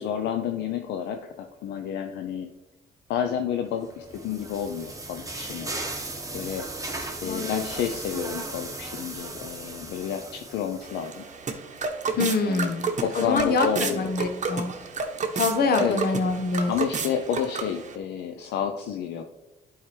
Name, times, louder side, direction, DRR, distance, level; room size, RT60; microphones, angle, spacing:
voice 1, 0.0-2.5 3.1-5.9 6.3-6.7 7.2-11.2 12.5-12.7 13.0-14.1 15.8-16.0 16.7-19.2, left 8 dB, 80° left, 5 dB, 0.6 m, -30 dB
sound 1, 3.8-11.3, right 2 dB, 20° right, 1.3 m, -37 dB
voice 2, 7.2-7.6 12.1-12.9 13.1-14.7 15.3-16.7, left 4 dB, 65° left, 6 dB, 1.1 m, -25 dB
sound 2, 10.8-17.9, right 4 dB, 45° right, 1.0 m, -31 dB
11.0 x 4.7 x 3.2 m, 1.0 s
supercardioid pair, 65°, 17 cm